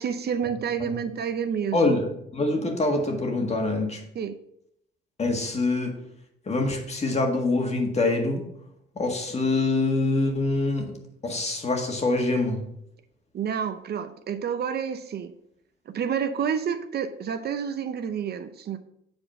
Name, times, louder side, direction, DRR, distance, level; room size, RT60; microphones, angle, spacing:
voice 1, 0.0-2.0 4.1-4.4 13.3-15.3 15.9-18.8, right 7 dB, 55° right, 9 dB, 0.6 m, -29 dB
voice 2, 1.7-4.0 5.2-6.0 6.5-8.5 9.0-10.9 11.2-12.6, left 2 dB, 35° left, 3 dB, 1.7 m, -25 dB
7.8 x 4.1 x 5.5 m, 0.74 s
cardioid pair, 90°, 20 cm